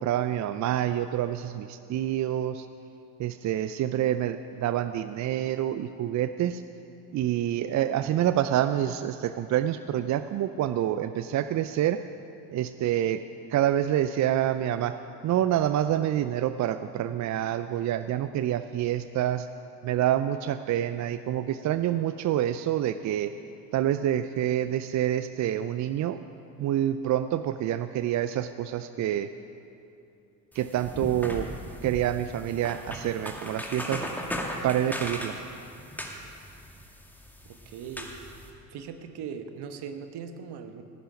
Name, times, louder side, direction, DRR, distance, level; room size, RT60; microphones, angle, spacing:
voice 1, 0.0-2.7 3.2-6.6 7.1-12.0 12.5-13.2 13.5-15.0 15.2-19.5 19.8-23.3 23.7-26.2 26.6-29.3 30.5-31.5 31.8-34.1 34.6-35.4, right 11 dB, 40° right, 11 dB, 0.5 m, -27 dB
sound 1, 30.5-38.5, equal, 5° left, 2.2 m, -38 dB
voice 2, 37.4-38.1 38.7-40.8, right 7 dB, 55° right, 8 dB, 1.3 m, -39 dB
17.0 x 10.0 x 5.2 m, 2.7 s
hypercardioid pair, 60°, 49 cm